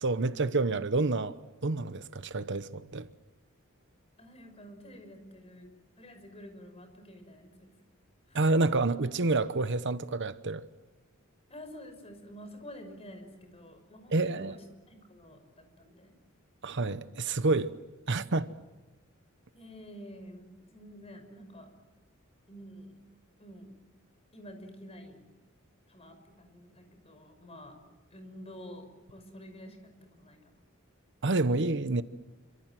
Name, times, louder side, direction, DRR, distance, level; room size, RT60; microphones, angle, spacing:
voice 1, 0.0-1.4 1.6-3.1 8.3-10.6 14.1-14.5 16.6-17.7 18.1-18.5 31.2-32.0, right 3 dB, 60° right, 1.0 m, -28 dB
voice 2, 4.2-5.7 6.0-7.7 8.3-8.4 11.5-16.2 19.5-21.7 22.5-23.0 23.4-23.7 24.3-25.3 25.9-27.8 28.1-30.6, equal, 30° left, 6.2 m, -49 dB
28.0 x 26.0 x 7.6 m
head